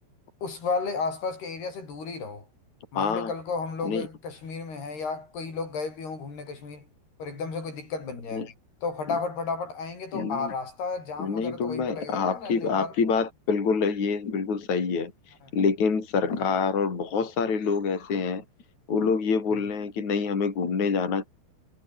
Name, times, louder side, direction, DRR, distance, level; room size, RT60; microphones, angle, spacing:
voice 1, 0.4-2.5 2.9-6.9 7.2-8.5 8.8-13.0 15.4-15.5 16.3-16.4 19.5-19.7, left 4 dB, 70° left, 9.3 m, -33 dB
voice 2, 2.9-3.3 3.8-4.1 8.3-8.5 10.1-10.5 11.2-15.1 15.5-18.4 18.9-21.3, left 5 dB, 45° left, 5.5 m, -26 dB
omnidirectional pair, 4.8 m